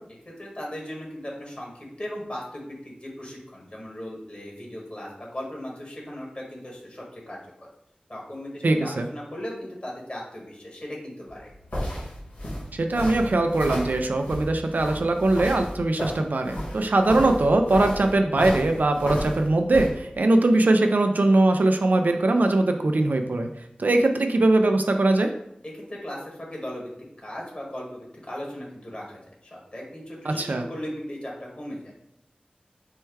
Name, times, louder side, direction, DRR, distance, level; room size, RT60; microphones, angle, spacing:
voice 1, 0.2-7.4 8.1-11.5 25.6-26.9 27.2-29.2 29.5-31.9, left 1 dB, 45° left, -3 dB, 1.6 m, -37 dB
voice 2, 8.6-9.1 12.7-23.5 23.8-25.3 30.3-30.7, right 2 dB, 80° right, 5 dB, 0.4 m, -21 dB
sound 1, 11.3-19.9, equal, 90° left, 1.6 m, -33 dB
4.4 x 2.2 x 4.5 m, 0.75 s
wide cardioid pair, 45°, 3 cm